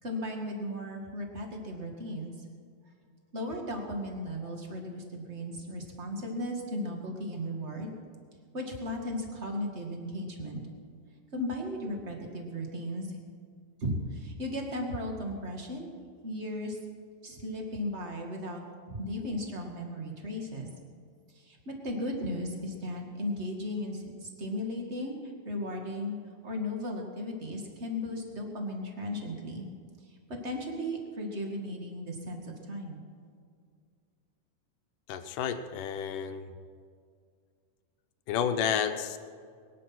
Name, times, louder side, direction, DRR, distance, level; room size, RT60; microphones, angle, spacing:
voice 1, 0.0-2.3 3.3-7.9 8.5-10.6 11.3-13.2 13.8-15.9 16.2-16.8 17.2-18.6 18.9-20.7 21.3-26.2 26.4-29.7 30.3-33.0, left 1 dB, 25° right, 2 dB, 1.7 m, -36 dB
voice 2, 35.1-36.5 38.3-39.2, left 8 dB, 75° left, 8 dB, 2.4 m, -31 dB
22.0 x 10.0 x 6.1 m, 2.2 s
omnidirectional pair, 3.9 m